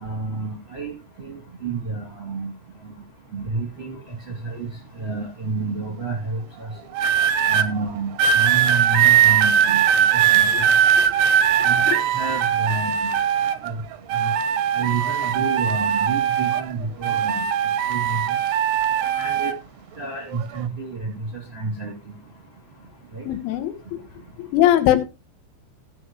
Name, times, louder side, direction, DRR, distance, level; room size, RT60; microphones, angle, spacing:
voice 1, 0.0-2.5 3.3-4.0 4.4-4.7 5.0-6.7 7.5-9.8 10.1-10.7 11.6-13.1 13.6-13.8 14.1-14.3 14.7-17.4 17.9-18.2 19.2-19.5 20.0-21.1 21.5-21.9 23.1-23.2, right 4 dB, 20° right, -1 dB, 2.0 m, -29 dB
sound 1, 7.0-7.7 8.2-13.7 14.1-16.7 17.0-19.6 20.3-20.6, right 8 dB, 80° right, 2.4 m, -20 dB
voice 2, 23.3-23.8 24.4-25.0, left 12 dB, 80° left, 9 dB, 3.5 m, -19 dB
16.0 x 7.4 x 3.1 m, 0.28 s
omnidirectional pair, 5.5 m